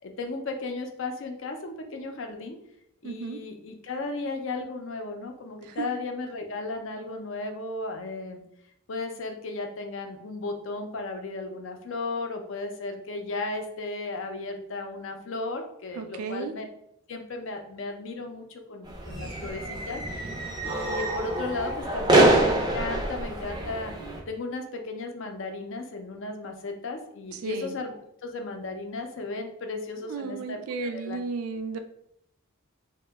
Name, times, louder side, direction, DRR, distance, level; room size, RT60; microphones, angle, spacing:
voice 1, 0.0-2.6 3.0-8.4 8.9-16.7 17.1-20.0 20.6-23.9 24.3-27.9 28.2-31.2, left 3 dB, 60° left, 4 dB, 0.4 m, -35 dB
voice 2, 3.0-3.4 5.6-5.9 15.9-16.5 27.3-27.8 30.0-31.8, right 4 dB, 85° right, 7 dB, 0.4 m, -34 dB
sound 1, 18.9-24.2, right 1 dB, 20° right, 0.4 m, -25 dB
2.8 x 2.1 x 3.3 m, 0.75 s
head